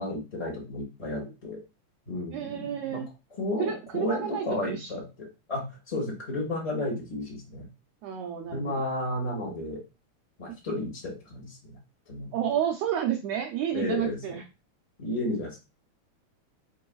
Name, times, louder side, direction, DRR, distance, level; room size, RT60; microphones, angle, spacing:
voice 1, 0.0-1.6 2.1-3.0 3.4-5.0 5.5-7.7 8.5-9.8 10.4-11.8 12.1-12.4 13.7-14.4 15.0-15.6, left 1 dB, 35° left, -2 dB, 0.5 m, -32 dB
voice 2, 2.3-3.1 3.6-4.9 8.0-8.7 12.3-14.4, right 9 dB, 75° right, 2 dB, 1.6 m, -31 dB
4.7 x 4.6 x 2.3 m, 0.27 s
omnidirectional pair, 3.3 m